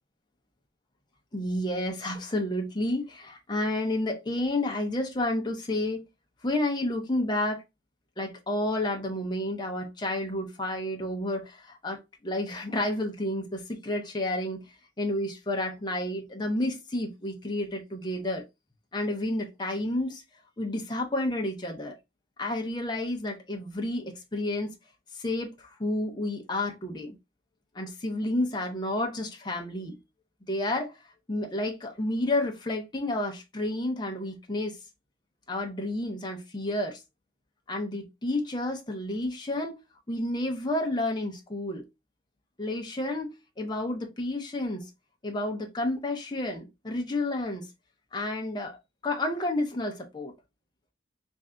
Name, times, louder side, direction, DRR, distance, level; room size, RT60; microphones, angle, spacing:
voice 1, 1.3-6.0 6.4-7.6 8.2-14.6 15.0-18.4 18.9-20.2 20.6-21.9 22.4-24.7 25.1-27.1 27.7-30.0 30.5-30.9 31.3-34.8 35.5-37.0 37.7-39.8 40.1-41.9 42.6-44.9 45.2-47.7 48.1-48.8 49.0-50.3, left 1 dB, 20° left, 0.6 m, -30 dB
3.3 x 2.6 x 3.6 m
head